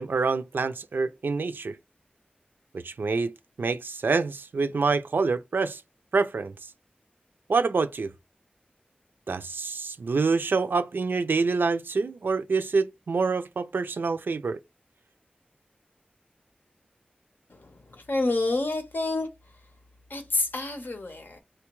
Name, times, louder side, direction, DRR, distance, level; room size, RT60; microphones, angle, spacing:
voice 1, 0.0-1.8 2.7-5.8 6.1-6.5 7.5-8.1 9.3-14.6, right 4 dB, 90° right, 0.3 m, -26 dB
voice 2, 17.5-19.3 20.1-21.4, left 2 dB, 70° left, 0.8 m, -28 dB
4.1 x 2.2 x 2.9 m
wide cardioid pair, 60°, 3 cm